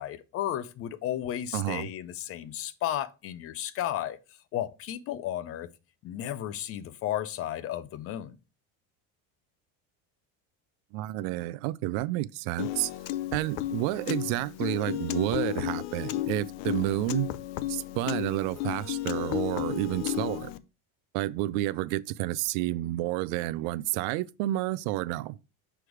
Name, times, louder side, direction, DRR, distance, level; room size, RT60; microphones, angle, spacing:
voice 1, 0.0-4.2 4.5-5.7 6.0-8.3, left 11 dB, 35° left, 0.4 m, -33 dB
voice 2, 1.5-1.9 10.9-12.9 13.3-17.3 17.7-20.5 21.1-25.4, right 16 dB, 70° right, 0.5 m, -30 dB
Piano, 12.6-20.6, left 15 dB, 80° left, 0.6 m, -33 dB
6.1 x 3.4 x 4.7 m
cardioid pair, 140°, 42 cm